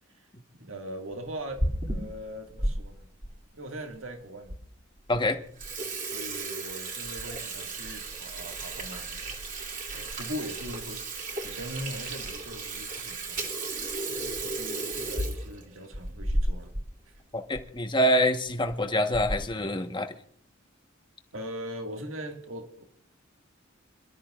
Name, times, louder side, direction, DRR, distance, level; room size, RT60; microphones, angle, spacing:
voice 1, 0.1-3.1 3.5-4.6 6.1-9.2 9.9-11.0 11.4-13.5 14.1-16.7 17.1-17.2 21.3-22.8, equal, 80° right, 3 dB, 2.1 m, -40 dB
Water tap faucet / Sink (filling or washing), 1.4-2.7 3.2-3.3 4.0-4.1 4.5-4.6 5.0-5.2 5.5-16.9 17.2-17.3 17.5-17.7 18.5-18.7 19.1-19.6, right 2 dB, 40° right, 2.7 m, -33 dB
voice 2, 5.1-5.4 17.3-20.1, equal, 25° left, 6 dB, 1.3 m, -26 dB
27.0 x 13.0 x 2.5 m, 0.64 s
head